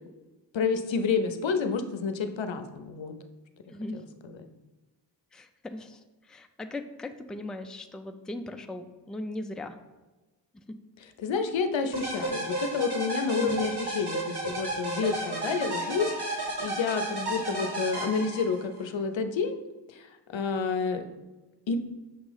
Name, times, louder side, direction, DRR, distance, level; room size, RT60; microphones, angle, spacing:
voice 1, 0.5-3.1 4.2-4.4 11.0-19.6 19.9-21.0 21.7-21.8, left 5 dB, 90° left, 8 dB, 0.6 m, -29 dB
voice 2, 5.3-6.0 6.3-9.8 10.7-10.8 13.4-13.6, left 2 dB, ahead, 7 dB, 0.3 m, -38 dB
sound 1, 11.9-18.8, right 2 dB, 60° right, 1.5 m, -33 dB
6.4 x 3.0 x 5.5 m, 1.1 s
wide cardioid pair, 90°, 44 cm